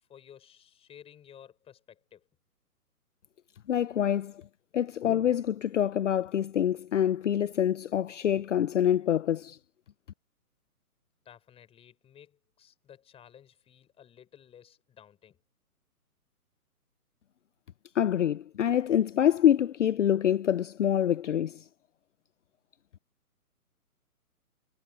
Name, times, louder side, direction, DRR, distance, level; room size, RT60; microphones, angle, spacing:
voice 1, 0.1-2.3 11.2-15.4, left 9 dB, 10° left, 6.4 m, -54 dB
voice 2, 3.7-4.4 4.7-9.6 17.9-21.7, left 10 dB, 50° left, 0.8 m, -26 dB
hypercardioid pair, 145°, 45 cm